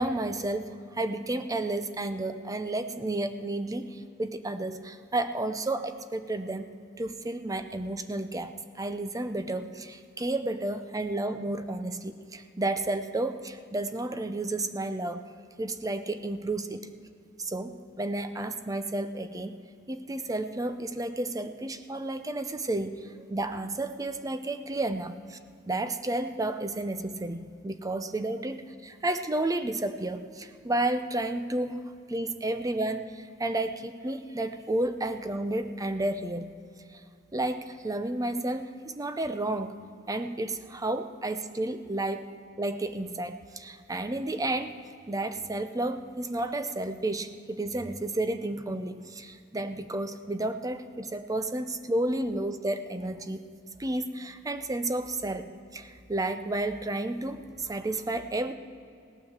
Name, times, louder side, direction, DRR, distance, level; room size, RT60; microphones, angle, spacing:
voice 1, 0.0-6.7 7.0-15.2 15.6-16.9 17.4-19.6 19.9-25.4 25.7-36.5 36.9-37.0 37.3-39.8 40.1-42.3 42.6-44.7 45.1-53.5 53.8-58.5, right 2 dB, 20° right, 9 dB, 0.6 m, -32 dB
18.0 x 9.3 x 7.3 m, 2.5 s
head